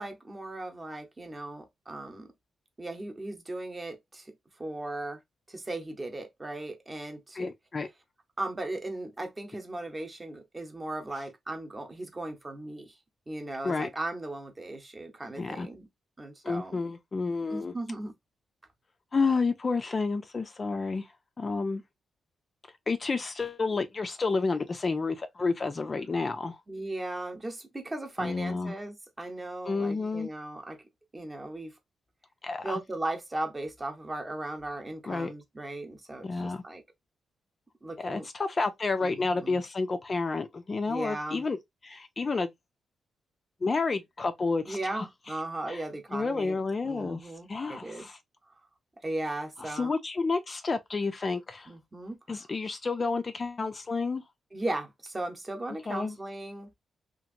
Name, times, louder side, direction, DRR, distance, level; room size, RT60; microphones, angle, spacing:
voice 1, 0.0-2.3 2.8-5.2 5.5-7.5 8.4-13.0 13.3-15.9 16.2-16.9 17.5-18.1 26.7-30.8 31.1-31.8 32.6-36.8 37.8-38.3 39.0-39.6 40.9-41.4 44.7-48.1 48.5-48.6 49.0-49.9 51.7-52.2 54.5-56.7, right 2 dB, 20° right, 0.8 m, -37 dB
voice 2, 7.4-7.9 13.6-13.9 15.4-15.7 16.4-17.7 19.1-21.8 22.9-26.6 28.2-28.7 29.6-30.3 32.4-32.7 35.0-35.3 36.2-36.6 38.0-41.6 41.8-42.5 43.6-45.1 45.7-45.8 46.1-48.2 49.6-51.7 52.3-54.2 55.9-56.2, left 4 dB, 35° left, 0.3 m, -30 dB
2.8 x 2.5 x 2.5 m
cardioid pair, 110°, 0 cm